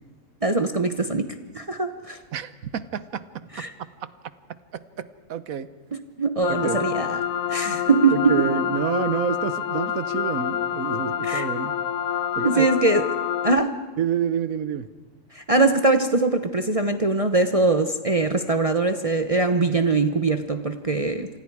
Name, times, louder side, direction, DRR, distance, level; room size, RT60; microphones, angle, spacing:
voice 1, 0.4-2.2 3.5-3.7 5.9-7.2 7.5-8.5 11.2-11.5 12.4-13.1 13.4-13.8 15.3-21.3, right 3 dB, 30° right, 7 dB, 0.9 m, -22 dB
voice 2, 2.3-4.1 4.5-5.7 6.5-6.9 7.7-7.8 8.1-11.7 12.4-12.7 14.0-14.9, right 8 dB, 90° right, 14 dB, 1.4 m, -29 dB
sound 1, 6.4-13.6, left 9 dB, 75° left, 1.3 m, -27 dB
28.5 x 26.0 x 4.8 m, 1.2 s
omnidirectional pair, 1.4 m